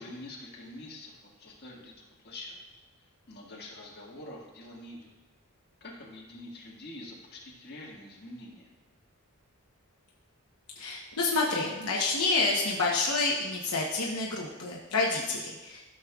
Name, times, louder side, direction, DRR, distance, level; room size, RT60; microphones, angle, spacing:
voice 1, 0.0-2.6 3.0-5.1 5.8-8.7, left 1 dB, 45° left, -3 dB, 1.8 m, -46 dB
voice 2, 10.7-15.8, left 3 dB, 80° left, -3 dB, 0.9 m, -28 dB
13.5 x 6.4 x 2.4 m, 1.1 s
head